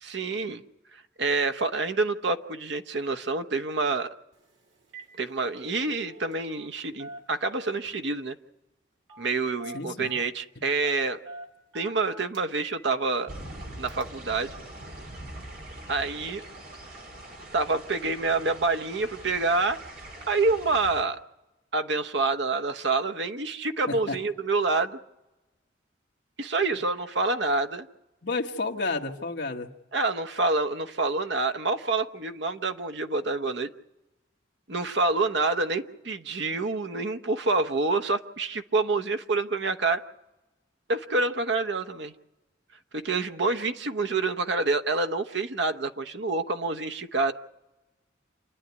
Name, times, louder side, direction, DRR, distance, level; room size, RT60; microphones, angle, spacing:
voice 1, 0.0-0.6 0.9-4.1 5.2-8.3 9.2-11.2 11.7-13.3 13.8-14.5 15.9-16.4 17.5-19.8 20.3-21.2 21.7-25.0 26.4-27.9 29.9-33.7 34.7-40.0 40.9-42.1 42.9-47.3, right 3 dB, 70° right, 8 dB, 1.0 m, -27 dB
Telephone, 4.3-4.5 4.8-5.1 5.4-6.7 7.0-7.9 9.1-9.3 9.6-10.3 10.8-12.8 13.2-13.3 13.9-14.0, right 2 dB, 90° right, 2.3 m, -45 dB
voice 2, 9.7-10.2 23.9-24.2 28.2-29.7, left 3 dB, 60° left, 2 dB, 1.5 m, -31 dB
sound 1, 13.3-21.0, right 1 dB, 50° right, 3.3 m, -43 dB
28.0 x 10.5 x 9.7 m, 1.0 s
head